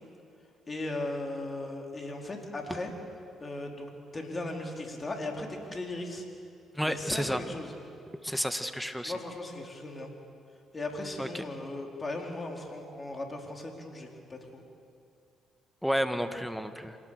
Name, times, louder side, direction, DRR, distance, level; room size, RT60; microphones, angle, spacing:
voice 1, 0.7-2.9 3.4-6.2 6.9-7.7 9.0-10.1 10.7-14.6, left 2 dB, 35° left, 2 dB, 4.5 m, -37 dB
voice 2, 6.7-7.4 8.2-9.1 11.2-11.4 15.8-17.0, equal, ahead, 8 dB, 1.9 m, -31 dB
26.5 x 19.0 x 6.7 m, 2.4 s
hypercardioid pair, 50°, 0 cm